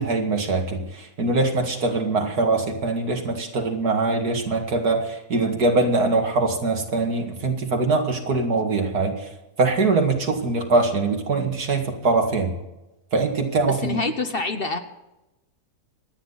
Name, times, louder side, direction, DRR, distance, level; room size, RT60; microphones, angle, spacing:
voice 1, 0.0-9.3 9.6-12.5 13.1-14.0, right 3 dB, 85° right, 3 dB, 2.6 m, -23 dB
voice 2, 13.6-14.8, left 2 dB, 40° left, 7 dB, 1.2 m, -26 dB
26.5 x 9.9 x 4.1 m, 0.98 s
omnidirectional pair, 1.6 m